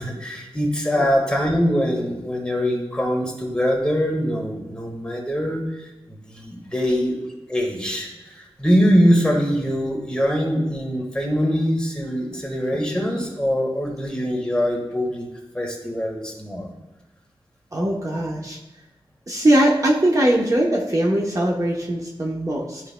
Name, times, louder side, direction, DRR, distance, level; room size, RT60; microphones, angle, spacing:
voice 1, 0.0-7.2 7.5-15.3 15.5-16.7, equal, 10° left, -1 dB, 1.5 m, -23 dB
voice 2, 17.7-18.6 19.3-22.8, right 1 dB, 35° right, -2 dB, 0.8 m, -20 dB
11.5 x 4.8 x 2.2 m, 1.1 s
wide cardioid pair, 90°, 10 cm